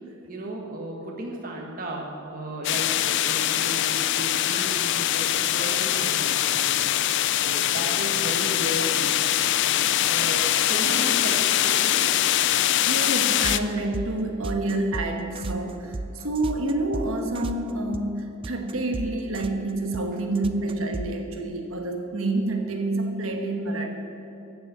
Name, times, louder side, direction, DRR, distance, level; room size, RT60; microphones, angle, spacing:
voice 1, 0.3-9.2 10.0-12.0 20.1-20.2, right 1 dB, 40° right, -1 dB, 1.4 m, -35 dB
sound 1, 2.6-13.6, left 12 dB, 50° left, 0.4 m, -23 dB
voice 2, 12.5-23.9, right 2 dB, 65° right, 4 dB, 1.4 m, -28 dB
sound 2, 13.4-21.1, right 2 dB, 25° right, 0.3 m, -34 dB
14.5 x 6.4 x 7.5 m, 2.8 s
head